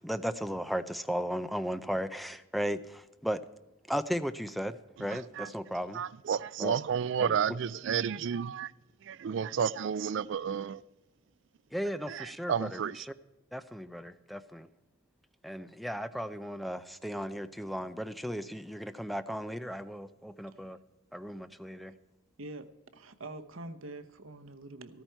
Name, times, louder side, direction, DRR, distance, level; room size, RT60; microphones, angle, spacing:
voice 1, 0.0-3.4 3.9-6.0 6.6-6.7 7.2-7.4 11.7-13.1 13.5-14.7 15.4-20.8 21.1-21.9, equal, ahead, 0.5 m, -36 dB
voice 2, 5.1-5.5 5.9-8.7 9.1-10.8 12.1-13.0, right 7 dB, 60° right, 0.3 m, -31 dB
voice 3, 22.4-25.0, right 2 dB, 80° right, 1.0 m, -45 dB
14.0 x 13.5 x 4.5 m
head